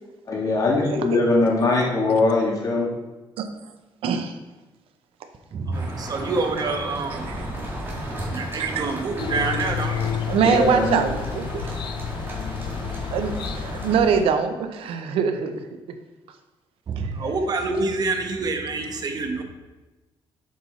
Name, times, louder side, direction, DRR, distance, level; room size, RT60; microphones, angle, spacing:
voice 1, 0.3-2.9 10.4-11.0 17.2-17.3, left 2 dB, 40° left, -2 dB, 1.9 m, -21 dB
voice 2, 4.0-4.3 7.3-7.5 8.6-8.8 10.3-11.7 13.1-15.6 17.0-17.1, right 6 dB, 85° right, 8 dB, 0.7 m, -23 dB
voice 3, 5.5-7.4 7.7-10.3 16.9-19.4, right 3 dB, 45° right, 5 dB, 1.0 m, -27 dB
sound 1, 5.7-14.0, right 1 dB, 25° right, 2.1 m, -34 dB
sound 2, 9.2-14.3, left 9 dB, 55° left, 0.4 m, -31 dB
7.5 x 5.5 x 4.2 m, 1.1 s
cardioid pair, 120°, 9 cm